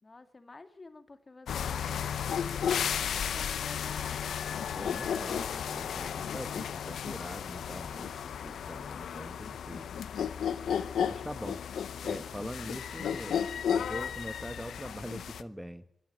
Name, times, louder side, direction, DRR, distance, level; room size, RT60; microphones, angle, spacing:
voice 1, 0.0-4.3, left 3 dB, 40° left, 9 dB, 2.3 m, -50 dB
sound 1, 1.5-15.4, left 8 dB, 85° left, 0.7 m, -34 dB
voice 2, 4.7-9.9 11.0-11.6 12.0-13.4 13.7-15.8, equal, ahead, 10 dB, 1.4 m, -42 dB
25.5 x 11.5 x 9.2 m, 0.73 s
cardioid pair, 45°, 0 cm